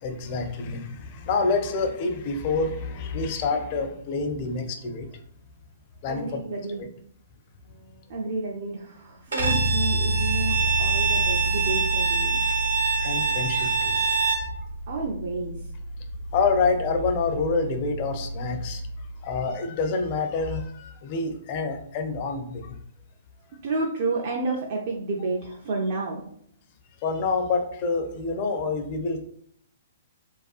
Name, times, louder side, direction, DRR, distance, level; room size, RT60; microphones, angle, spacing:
voice 1, 0.0-5.1 6.0-6.4 12.4-12.6 13.0-14.0 16.3-18.8 19.2-22.7 27.0-29.2, left 4 dB, 40° left, 6 dB, 0.4 m, -27 dB
voice 2, 6.1-6.8 7.7-12.4 14.9-15.7 23.6-26.2, right 3 dB, 50° right, -2 dB, 0.4 m, -31 dB
Bowed string instrument, 9.3-14.5, right 5 dB, 80° right, 0.8 m, -25 dB
Bass guitar, 9.4-19.2, right 1 dB, 80° left, 0.6 m, -30 dB
2.5 x 2.2 x 2.4 m, 0.64 s
figure-of-eight pair, 120°, 0 cm